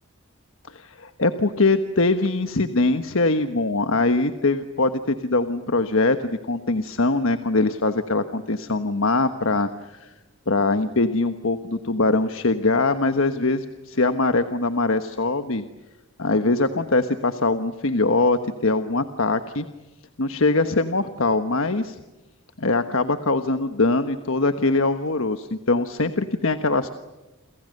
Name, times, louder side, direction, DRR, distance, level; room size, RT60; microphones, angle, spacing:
voice 1, 0.6-10.1 10.5-15.6 16.2-19.7 20.2-22.0 22.6-26.9, left 3 dB, 75° left, 9 dB, 1.3 m, -22 dB
29.5 x 27.5 x 6.7 m, 1.1 s
head